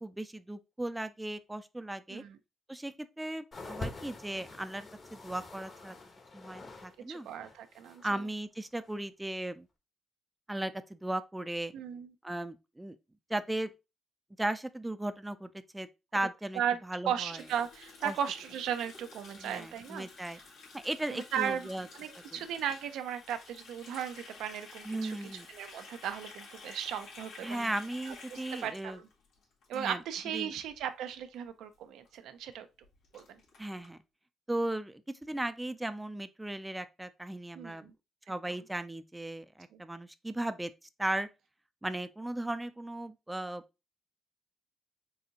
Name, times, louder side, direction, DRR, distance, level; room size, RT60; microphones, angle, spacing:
voice 1, 0.0-2.2 2.7-6.0 6.3-7.3 8.0-9.7 10.5-11.7 12.2-13.0 13.3-13.7 14.4-15.9 16.1-16.6 16.9-17.4 18.0-18.1 19.4-20.4 20.7-21.9 22.3-22.4 24.8-25.5 27.4-29.0 29.7-30.0 30.3-30.5 33.6-34.0 34.5-37.9 38.3-40.7 41.0-41.3 41.8-43.6, right 1 dB, 10° right, 0.4 m, -36 dB
sound 1, 3.5-7.0 7.2-8.1 8.8-9.0, left 2 dB, 35° left, 1.0 m, -45 dB
voice 2, 7.1-8.3 11.7-12.1 16.5-20.4 21.1-27.7 28.1-29.1 29.7-32.7 33.1-33.4 37.5-37.9 38.5-38.6 39.7-39.8, right 9 dB, 85° right, 0.5 m, -37 dB
Water tap faucet, 17.3-30.3 30.6-30.8 31.1-31.5 31.7-31.8 32.1-32.2 32.5-32.6 32.8-33.9, left 4 dB, 85° left, 1.9 m, -52 dB
4.1 x 3.5 x 2.8 m
cardioid pair, 90°, 0 cm